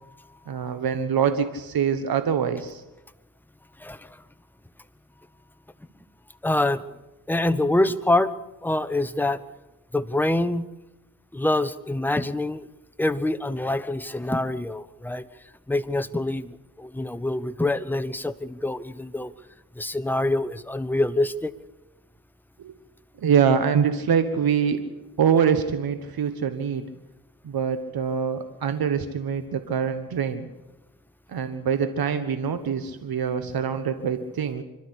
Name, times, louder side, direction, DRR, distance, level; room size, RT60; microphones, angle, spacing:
voice 1, 0.5-2.8 22.6-22.8 23.2-24.8 25.2-26.9 27.4-30.5 31.3-34.6, right 7 dB, 70° right, 9 dB, 1.4 m, -24 dB
voice 2, 3.8-4.2 6.4-6.8 7.3-8.3 8.6-9.4 9.9-10.7 11.3-12.7 13.0-15.3 15.7-19.3 19.8-21.5, left 2 dB, 5° left, 11 dB, 0.9 m, -25 dB
26.0 x 12.5 x 8.4 m, 1.0 s
cardioid pair, 85°, 38 cm